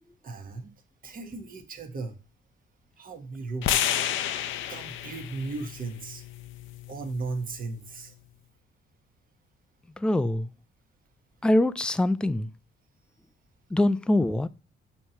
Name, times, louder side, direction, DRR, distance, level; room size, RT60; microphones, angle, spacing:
voice 1, 0.2-0.7 1.0-2.2 3.0-3.9 4.7-6.2 6.9-8.1, right 3 dB, 45° right, 1.2 m, -36 dB
sound 1, 3.6-7.8, left 10 dB, 80° left, 0.5 m, -31 dB
voice 2, 10.0-10.5 11.4-12.5 13.7-14.5, left 1 dB, 5° left, 0.3 m, -24 dB
6.4 x 3.0 x 5.5 m
cardioid pair, 90°, 20 cm